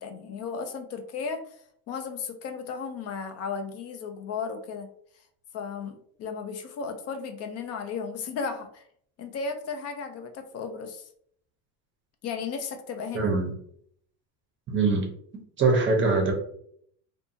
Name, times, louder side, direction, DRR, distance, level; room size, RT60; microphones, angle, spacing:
voice 1, 0.0-1.6 1.9-4.9 5.5-8.8 9.2-11.1 12.2-13.3, left 5 dB, 35° left, 7 dB, 0.4 m, -35 dB
voice 2, 13.1-13.5 14.7-15.1 15.6-16.3, right 3 dB, 25° right, 2 dB, 0.7 m, -22 dB
2.6 x 2.3 x 2.6 m, 0.65 s
supercardioid pair, 115°, 45 cm